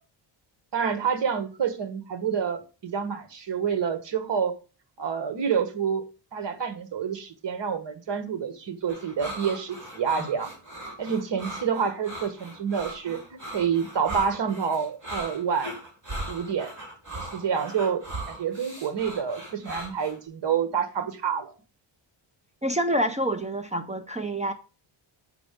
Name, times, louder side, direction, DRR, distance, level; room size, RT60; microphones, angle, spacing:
voice 1, 0.7-4.5 5.0-6.0 6.3-10.5 11.0-15.8 16.3-16.7 17.2-18.0 18.3-21.5, right 7 dB, 60° right, 1.6 m, -28 dB
sound 1, 8.9-20.2, right 1 dB, 35° right, 5.6 m, -38 dB
voice 2, 22.6-24.5, right 1 dB, 15° right, 0.8 m, -27 dB
8.5 x 5.8 x 5.3 m
wide cardioid pair, 130°, 49 cm